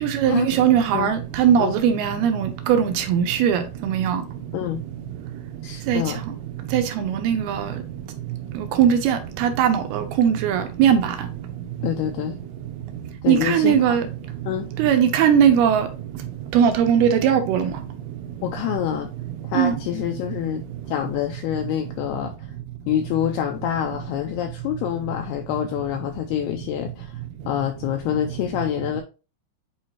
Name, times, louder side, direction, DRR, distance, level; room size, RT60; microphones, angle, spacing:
voice 1, 0.0-4.2 5.9-6.0 6.7-7.6 8.8-11.0 13.3-14.0 14.8-15.9 16.5-17.7 19.6-19.7, right 8 dB, 75° right, 2.5 m, -19 dB
voice 2, 5.6-6.2 11.8-12.4 13.2-14.0 14.5-14.7 18.4-19.1 19.5-22.5 22.9-27.2 27.5-29.0, left 11 dB, 80° left, 2.3 m, -26 dB
8.5 x 4.3 x 2.9 m
omnidirectional pair, 5.0 m